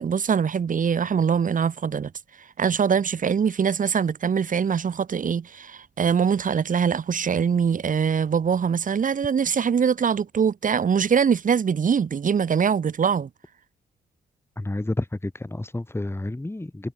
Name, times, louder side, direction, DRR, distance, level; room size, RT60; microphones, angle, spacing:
voice 1, 0.0-2.1 2.6-13.3, right 7 dB, 50° right, 1.4 m, -23 dB
voice 2, 14.6-16.9, left 2 dB, 15° left, 3.3 m, -30 dB
supercardioid pair, 55°, 17 cm